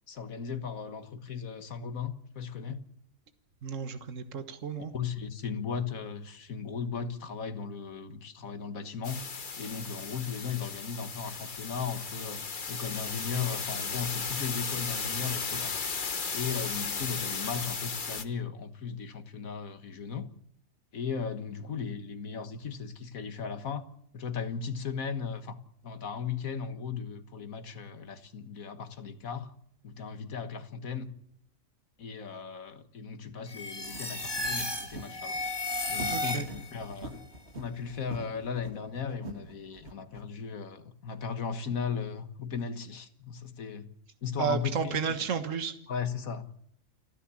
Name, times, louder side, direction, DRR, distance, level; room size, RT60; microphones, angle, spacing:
voice 1, 0.1-2.8 4.9-9.2 9.6-12.4 12.7-15.9 16.3-20.3 20.9-23.9 24.1-25.6 25.8-29.5 29.8-31.1 32.0-35.4 35.9-37.1 37.5-43.9 44.2-45.0 45.9-46.6, left 6 dB, 90° left, 1.9 m, -36 dB
voice 2, 3.6-4.9 36.1-36.5 44.4-45.8, right 6 dB, 65° right, 1.8 m, -32 dB
sound 1, 9.0-18.2, left 5 dB, 40° left, 1.3 m, -35 dB
sound 2, 33.5-36.8, left 2 dB, 15° left, 2.8 m, -34 dB
sound 3, 33.6-40.2, right 2 dB, 50° right, 2.4 m, -45 dB
29.5 x 10.0 x 9.9 m
omnidirectional pair, 1.4 m